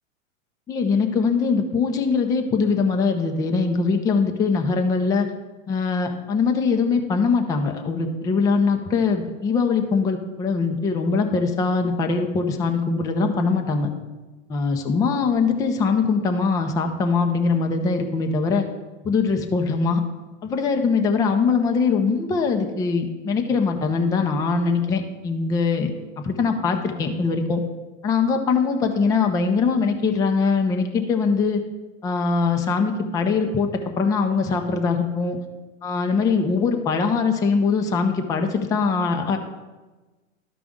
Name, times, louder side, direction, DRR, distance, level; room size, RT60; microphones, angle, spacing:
voice 1, 0.7-5.3 5.7-13.9 14.5-18.7 19.0-20.0 20.4-25.9 26.2-27.6 28.0-31.6 32.0-33.7 34.0-35.4 35.8-39.4, left 4 dB, 10° left, 4 dB, 0.4 m, -22 dB
12.5 x 5.0 x 3.6 m, 1.2 s
hypercardioid pair, 120°, 39 cm